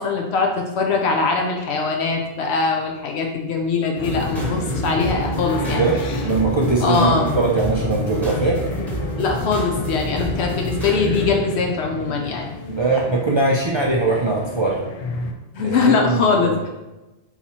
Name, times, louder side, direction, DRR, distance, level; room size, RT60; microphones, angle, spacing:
voice 1, 0.0-6.2 6.8-7.3 9.2-12.5 15.5-16.7, left 4 dB, 75° left, 1 dB, 0.8 m, -22 dB
sound 1, 4.0-15.3, left 3 dB, 50° left, 0.4 m, -30 dB
sound 2, 4.0-11.4, right 2 dB, ahead, 0.9 m, -29 dB
voice 2, 5.8-7.1 7.4-8.6 12.7-14.8 15.6-16.5, right 3 dB, 50° right, -3 dB, 0.3 m, -21 dB
4.1 x 2.8 x 4.2 m, 1.1 s
omnidirectional pair, 1.1 m